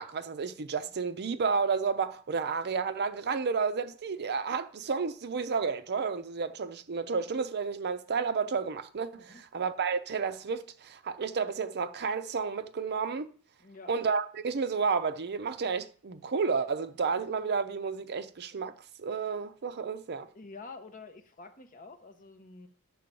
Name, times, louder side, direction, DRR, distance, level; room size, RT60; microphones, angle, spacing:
voice 1, 0.0-13.3 13.9-20.3, right 5 dB, 50° right, 0.6 m, -31 dB
voice 2, 13.6-13.9 20.3-22.7, left 3 dB, 40° left, 1.0 m, -48 dB
9.5 x 3.8 x 6.9 m
head